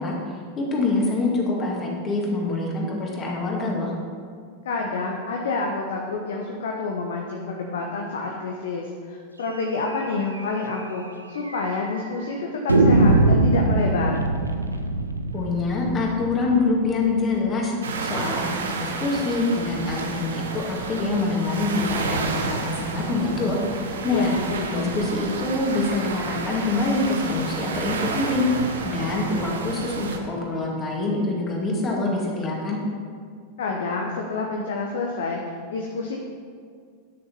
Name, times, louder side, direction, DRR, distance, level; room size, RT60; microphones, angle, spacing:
voice 1, 0.0-3.9 15.3-17.7 18.0-24.4 24.7-28.4 28.8-32.8, left 3 dB, 25° left, -2 dB, 2.3 m, -25 dB
voice 2, 4.6-14.2 24.1-24.9 33.6-35.4 35.7-36.2, left 3 dB, 60° left, 0 dB, 1.0 m, -28 dB
sound 1, 9.9-10.0 10.3-10.4 10.7-10.8 11.5-12.0 12.7-17.5, right 2 dB, 80° right, 0.7 m, -22 dB
sound 2, 17.8-30.2, right 4 dB, 65° right, 1.0 m, -31 dB
11.0 x 6.4 x 5.5 m, 2.1 s
figure-of-eight pair, 90°, 0 cm